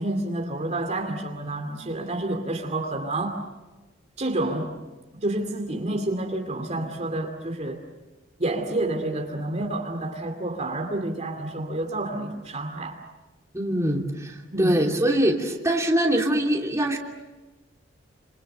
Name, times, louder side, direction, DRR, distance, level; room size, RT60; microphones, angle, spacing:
voice 1, 0.0-3.4 4.2-4.7 5.2-7.8 8.4-13.0 14.5-14.9, right 2 dB, 35° right, 2.5 m, -29 dB
voice 2, 13.5-17.0, right 1 dB, 15° right, 3.0 m, -23 dB
28.5 x 28.0 x 6.9 m
head